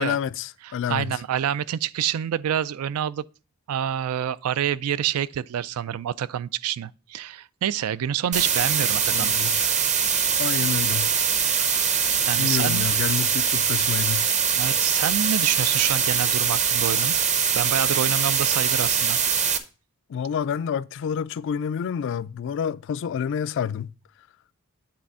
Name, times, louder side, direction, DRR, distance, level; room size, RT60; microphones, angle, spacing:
voice 1, 0.0-1.2 9.1-9.8 10.4-11.1 11.5-11.9 12.4-14.3 20.1-23.9, left 7 dB, 60° left, 0.3 m, -29 dB
voice 2, 0.9-3.2 3.7-9.3 10.0-10.3 12.2-12.9 14.5-17.2 17.5-19.2, right 9 dB, 75° right, 0.4 m, -27 dB
sound 1, 8.3-19.6, right 7 dB, 35° right, 0.7 m, -22 dB
8.7 x 3.4 x 5.3 m
head